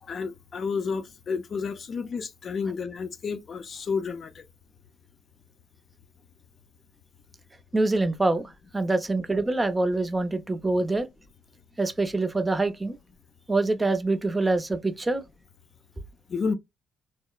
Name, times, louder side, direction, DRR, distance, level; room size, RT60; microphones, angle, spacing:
voice 1, 0.0-4.4 16.3-16.5, left 5 dB, 55° left, 0.5 m, -31 dB
voice 2, 7.7-11.1 11.8-13.0 13.5-15.2, right 2 dB, 20° right, 0.5 m, -25 dB
2.8 x 2.0 x 2.2 m
supercardioid pair, 65°, 0 cm